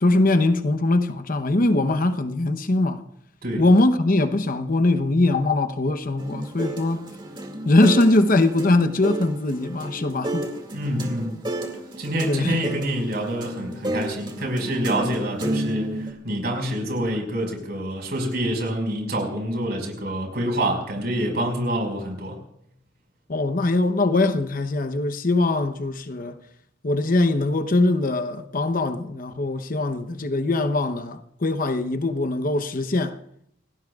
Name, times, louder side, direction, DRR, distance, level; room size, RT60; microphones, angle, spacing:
voice 1, 0.0-3.0 3.6-7.0 7.7-10.5 12.2-12.6 23.3-26.4 26.8-33.2, left 2 dB, 45° left, 0.9 m, -21 dB
sound 1, 6.2-16.1, right 1 dB, 25° right, 2.3 m, -31 dB
voice 2, 10.7-11.4 12.0-22.3, right 1 dB, 55° right, 5.4 m, -27 dB
29.0 x 17.0 x 2.4 m
head